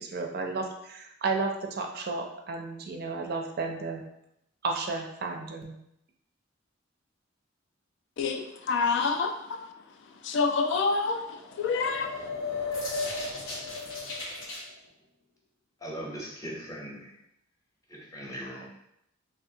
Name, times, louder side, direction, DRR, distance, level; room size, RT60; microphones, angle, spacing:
voice 1, 0.0-4.0 4.6-5.7, right 3 dB, 55° right, 2 dB, 0.4 m, -33 dB
voice 2, 8.2-9.7 10.2-12.2, left 4 dB, 65° left, 6 dB, 0.3 m, -28 dB
sound 1, 11.3-14.6, left 3 dB, 80° left, 0.8 m, -34 dB
voice 3, 15.8-17.1 17.9-18.7, equal, 15° left, -3 dB, 0.7 m, -39 dB
3.4 x 2.4 x 2.7 m, 0.78 s
head